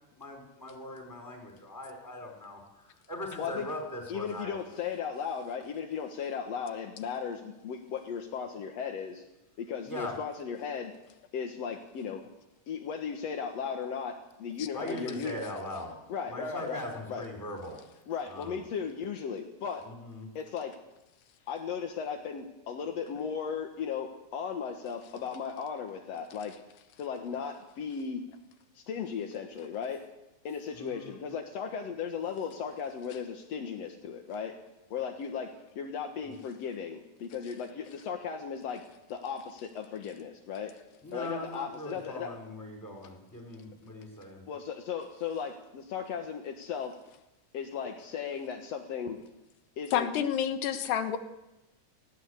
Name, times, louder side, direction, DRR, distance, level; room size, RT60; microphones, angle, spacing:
voice 1, 0.2-4.6 9.9-10.1 14.7-16.0 16.3-17.8 18.3-18.6 19.8-20.3 30.7-31.2 36.2-36.4 41.0-44.4, left 1 dB, 5° left, 2 dB, 4.7 m, -40 dB
voice 2, 4.1-9.2 9.6-10.9 11.3-12.2 12.7-15.4 16.1-16.8 17.1-17.2 18.1-19.9 20.3-20.7 21.5-26.5 27.0-28.2 28.7-30.0 30.4-34.5 34.9-38.8 39.1-40.7 41.1-42.3 44.5-46.9 47.5-49.2 49.8-50.1, left 6 dB, 55° left, 3 dB, 1.9 m, -36 dB
voice 3, 49.9-51.2, left 9 dB, 85° left, 7 dB, 3.4 m, -29 dB
19.0 x 17.0 x 8.2 m, 0.95 s
omnidirectional pair, 4.6 m